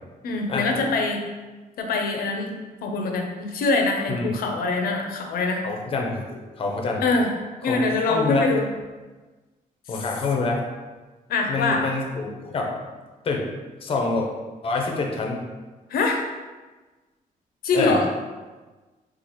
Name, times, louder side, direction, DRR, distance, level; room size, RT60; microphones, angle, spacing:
voice 1, 0.2-1.2 1.8-2.5 2.8-5.6 7.0-7.3 7.6-8.7 11.3-11.9 15.9-16.2 17.6-18.1, left 3 dB, 90° left, 2 dB, 0.6 m, -24 dB
voice 2, 5.6-7.0 7.6-7.8 8.1-8.5 9.9-10.6 11.5-12.7 13.2-13.5 13.8-14.3 14.6-15.4 17.7-18.0, left 3 dB, 40° left, 1 dB, 0.6 m, -26 dB
2.9 x 2.4 x 4.1 m, 1.3 s
cardioid pair, 155°, 15 cm